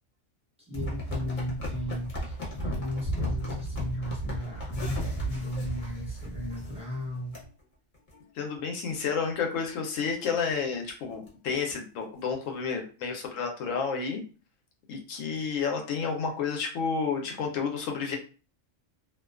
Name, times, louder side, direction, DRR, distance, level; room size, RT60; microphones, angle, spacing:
sound 1, 0.7-7.0 7.3-7.4 7.9-8.2 8.6-8.7 8.9-9.0 9.5-9.7 10.1-10.2 10.5-10.6 10.9-11.7 12.3-12.4, equal, 40° left, 0.8 m, -34 dB
voice 1, 0.7-7.3, equal, 5° right, -5 dB, 0.5 m, -35 dB
voice 2, 8.4-14.2 14.9-18.2, left 5 dB, 80° left, 3 dB, 1.0 m, -30 dB
2.4 x 2.2 x 2.3 m, 0.36 s
omnidirectional pair, 1.4 m